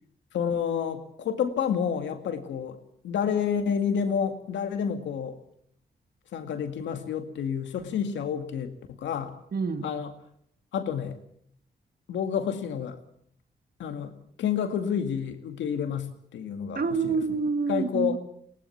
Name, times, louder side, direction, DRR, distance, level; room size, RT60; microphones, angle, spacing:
voice 1, 0.3-2.8 3.0-5.4 6.3-9.3 9.8-10.1 10.7-11.2 12.1-13.0 13.8-17.2 17.7-18.2, left 7 dB, 90° left, 7 dB, 2.2 m, -29 dB
voice 2, 9.5-10.0 16.8-18.2, right 4 dB, 55° right, 9 dB, 2.0 m, -27 dB
23.0 x 18.0 x 7.3 m, 0.67 s
cardioid pair, 55°, 19 cm